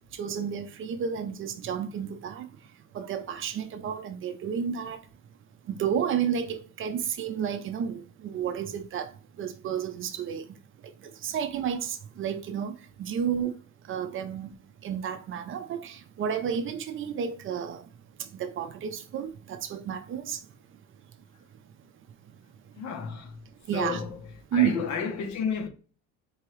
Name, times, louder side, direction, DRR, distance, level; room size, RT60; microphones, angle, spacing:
voice 1, 0.1-2.5 2.9-5.0 5.7-9.1 9.4-10.4 11.0-13.6 13.9-14.5 14.8-17.8 18.2-20.4 23.7-24.0 24.5-24.8, right 8 dB, 40° right, 0.5 m, -31 dB
voice 2, 22.8-23.4 23.7-24.2 24.5-25.7, left 6 dB, 60° left, 1.0 m, -31 dB
4.5 x 2.9 x 3.1 m
cardioid pair, 145°, 31 cm